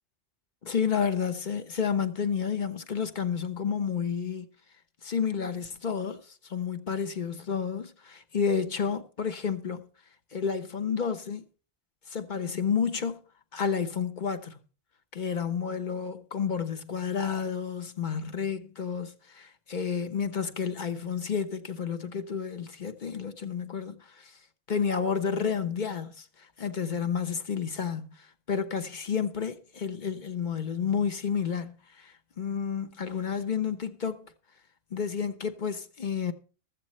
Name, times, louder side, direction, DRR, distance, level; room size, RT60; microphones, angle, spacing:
voice 1, 0.6-4.5 5.0-9.8 10.3-11.4 12.1-13.2 13.5-14.6 15.1-24.4 24.7-34.3 34.9-36.3, left 6 dB, 45° left, 1.0 m, -31 dB
15.0 x 13.5 x 3.2 m
omnidirectional pair, 1.2 m